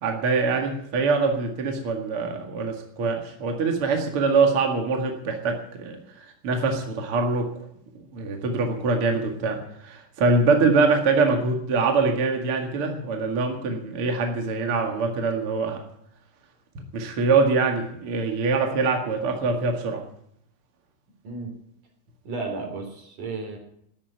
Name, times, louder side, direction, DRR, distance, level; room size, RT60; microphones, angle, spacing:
voice 1, 0.0-6.0 6.4-7.5 8.1-9.6 9.8-15.8 16.9-20.0, right 4 dB, 45° right, 3 dB, 2.6 m, -23 dB
voice 2, 22.2-23.6, right 3 dB, 70° right, 3 dB, 5.1 m, -33 dB
14.0 x 10.5 x 8.9 m, 0.72 s
omnidirectional pair, 3.7 m